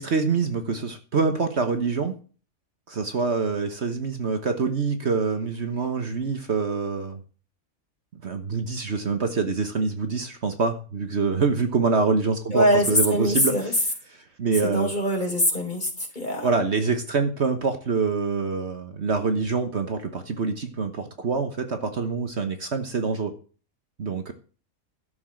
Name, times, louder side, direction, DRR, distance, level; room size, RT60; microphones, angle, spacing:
voice 1, 0.0-2.1 2.9-7.2 8.2-14.9 16.4-23.3 24.0-24.3, right 4 dB, 50° right, 7 dB, 1.5 m, -25 dB
voice 2, 12.5-13.7 14.6-15.9 16.1-16.5, equal, 30° left, 1 dB, 4.4 m, -23 dB
13.0 x 7.1 x 7.5 m, 0.38 s
omnidirectional pair, 1.5 m